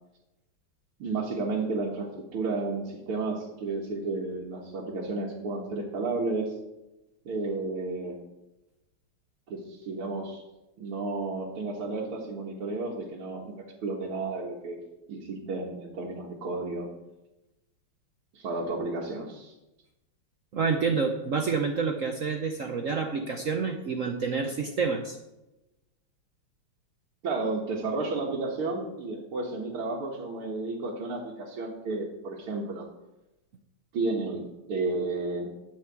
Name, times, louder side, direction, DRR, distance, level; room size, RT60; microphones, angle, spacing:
voice 1, 1.0-6.5 7.3-8.2 9.5-10.4 10.8-14.8 15.1-16.9 18.3-19.5 27.2-32.9 33.9-35.5, right 3 dB, 85° right, -4 dB, 2.3 m, -32 dB
voice 2, 20.5-25.2, right 5 dB, 60° right, 3 dB, 0.8 m, -28 dB
11.0 x 5.0 x 8.2 m, 0.97 s
omnidirectional pair, 2.4 m